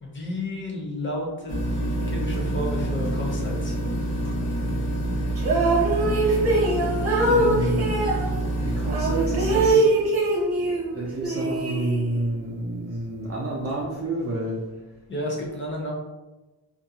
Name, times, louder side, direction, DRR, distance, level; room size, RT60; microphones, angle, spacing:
voice 1, 0.0-3.8 15.1-15.9, left 1 dB, 25° left, -2 dB, 0.7 m, -31 dB
sound 1, 1.5-9.7, right 1 dB, 65° left, 0.9 m, -27 dB
sound 2, 5.4-8.2 8.9-10.9 11.2-12.3, right 2 dB, 50° right, 0.9 m, -22 dB
voice 2, 7.0-8.1 8.6-14.6, right 2 dB, 35° right, -4 dB, 0.4 m, -30 dB
2.5 x 2.2 x 2.7 m, 1.1 s
wide cardioid pair, 115°, 47 cm